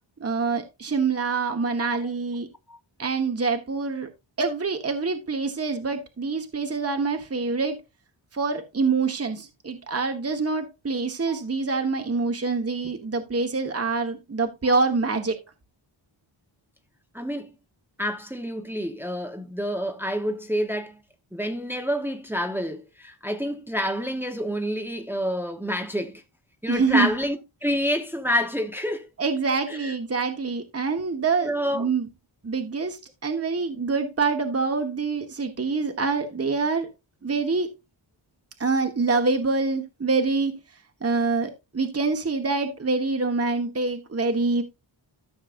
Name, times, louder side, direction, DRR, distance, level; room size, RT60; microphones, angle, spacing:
voice 1, 0.2-2.5 3.0-4.1 4.4-7.8 8.3-15.4 26.7-27.1 29.2-32.1 32.4-36.9 37.2-37.7 38.6-40.5 41.0-44.6, right 4 dB, 30° right, 1.3 m, -25 dB
voice 2, 1.8-2.1 2.7-2.8 11.3-11.4 17.1-17.5 18.0-21.0 21.3-26.2 26.6-29.1 29.7-29.9 31.4-31.9, equal, 5° right, 1.0 m, -28 dB
13.5 x 6.5 x 2.5 m
wide cardioid pair, 105°, 48 cm